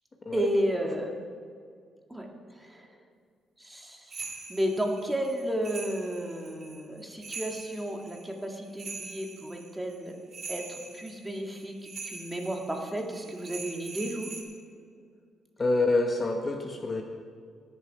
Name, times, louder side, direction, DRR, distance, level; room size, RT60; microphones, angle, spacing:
voice 1, 0.3-1.1 2.1-2.9 3.6-10.2 10.5-11.7 12.0-14.3, equal, 10° right, 1 dB, 2.1 m, -32 dB
sound 1, 4.1-14.4, right 4 dB, 45° right, 2.6 m, -43 dB
voice 2, 15.6-17.0, left 2 dB, 30° left, 3 dB, 1.1 m, -26 dB
20.0 x 7.1 x 4.8 m, 2.1 s
cardioid pair, 90°, 0 cm